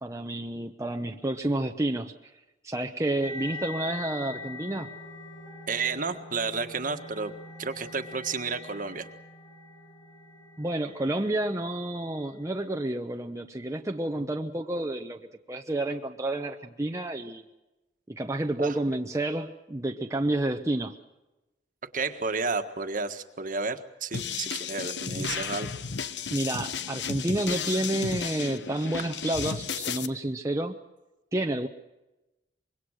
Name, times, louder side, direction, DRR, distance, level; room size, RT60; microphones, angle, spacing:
voice 1, 0.0-2.3 2.6-4.9 10.6-15.2 15.5-17.4 18.1-21.0 25.2-25.3 26.3-30.7 31.3-31.7, right 1 dB, 20° right, 4 dB, 0.9 m, -30 dB
sound 1, 3.2-12.7, left 3 dB, 40° left, 3.8 m, -43 dB
voice 2, 5.7-7.3 7.6-9.1 18.6-18.8 21.9-25.7 29.0-29.1, right 4 dB, 50° right, 8 dB, 1.6 m, -31 dB
sound 2, 24.1-30.1, left 6 dB, 80° left, 1.1 m, -33 dB
25.5 x 22.5 x 6.5 m, 1.0 s
head